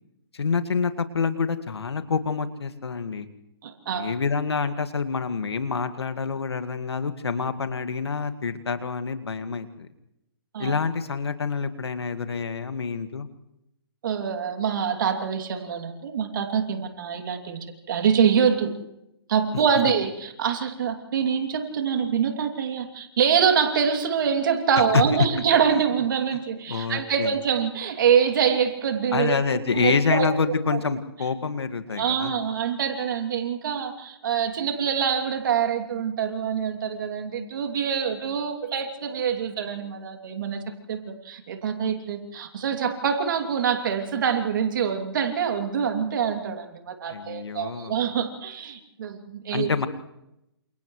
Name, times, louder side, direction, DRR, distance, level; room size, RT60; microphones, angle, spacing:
voice 1, 0.3-3.3 3.9-9.9 10.6-13.3 24.9-25.0 26.7-27.3 29.1-32.3 47.1-48.0 49.5-49.9, left 5 dB, 80° left, 9 dB, 2.0 m, -27 dB
voice 2, 3.6-4.1 10.5-10.8 14.0-18.7 19.3-29.4 29.7-30.3 30.7-30.8 31.9-40.6 40.9-49.7, right 7 dB, 50° right, 5 dB, 3.0 m, -25 dB
29.0 x 28.0 x 3.3 m, 0.85 s
hypercardioid pair, 145°, 13 cm